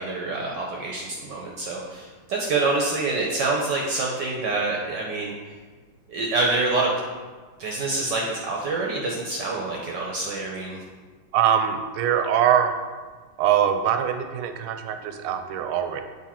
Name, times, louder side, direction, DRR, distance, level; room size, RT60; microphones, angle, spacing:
voice 1, 0.0-5.3 6.1-6.9 7.6-10.8, right 3 dB, 65° right, -2 dB, 1.2 m, -26 dB
voice 2, 11.3-12.8 13.4-16.0, right 9 dB, 85° right, 7 dB, 1.5 m, -22 dB
7.4 x 3.6 x 4.3 m, 1.4 s
omnidirectional pair, 2.4 m